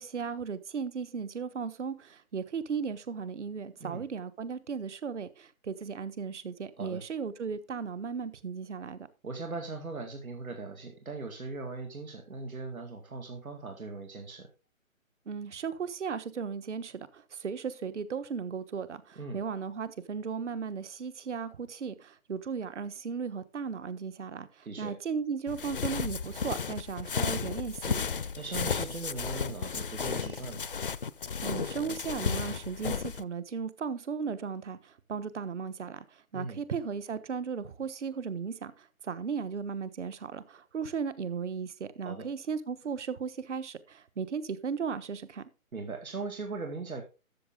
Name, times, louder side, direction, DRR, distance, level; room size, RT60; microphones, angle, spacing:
voice 1, 0.0-9.1 15.3-28.1 31.4-36.0 36.3-45.4, right 6 dB, 55° right, 1.3 m, -36 dB
voice 2, 9.2-14.5 19.2-19.4 24.6-24.9 28.4-30.9 36.3-36.6 42.1-42.3 45.7-47.0, right 3 dB, 80° right, 2.3 m, -39 dB
sound 1, 25.5-33.2, left 6 dB, 45° left, 0.4 m, -33 dB
13.0 x 7.4 x 3.8 m
figure-of-eight pair, 150°, 41 cm